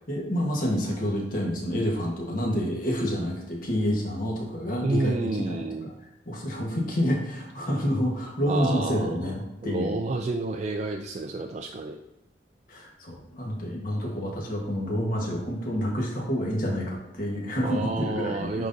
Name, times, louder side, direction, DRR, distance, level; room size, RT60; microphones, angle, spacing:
voice 1, 0.1-5.9 6.3-10.0 12.7-18.7, equal, 50° left, -2 dB, 1.4 m, -28 dB
voice 2, 4.8-5.9 8.4-9.4 9.6-12.0 17.6-18.7, right 3 dB, 40° right, 3 dB, 0.3 m, -30 dB
9.4 x 3.8 x 2.7 m, 0.96 s
head